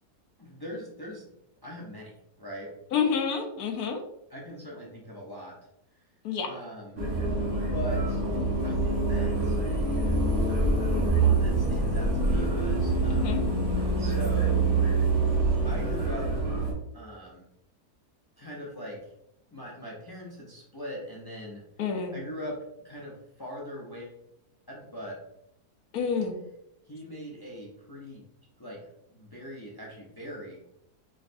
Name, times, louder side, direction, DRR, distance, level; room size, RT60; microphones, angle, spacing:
voice 1, 0.4-1.2 1.6-2.7 4.3-5.5 6.5-7.0 7.6-8.2 8.6-9.6 11.0-13.4 14.0-14.7 15.6-16.3 16.9-17.4 18.4-19.1 19.5-21.6 22.1-22.6 22.8-24.2 24.7-25.2 26.9-28.3 28.6-28.8 29.1-30.6, equal, 30° left, -4 dB, 0.4 m, -41 dB
voice 2, 2.9-4.0 6.2-6.5 13.1-13.4 21.8-22.2 25.9-26.4, left 6 dB, 75° left, 5 dB, 1.1 m, -28 dB
sound 1, 7.0-16.7, right 2 dB, 50° right, 1.5 m, -25 dB
4.8 x 3.2 x 2.6 m, 0.82 s
omnidirectional pair, 1.7 m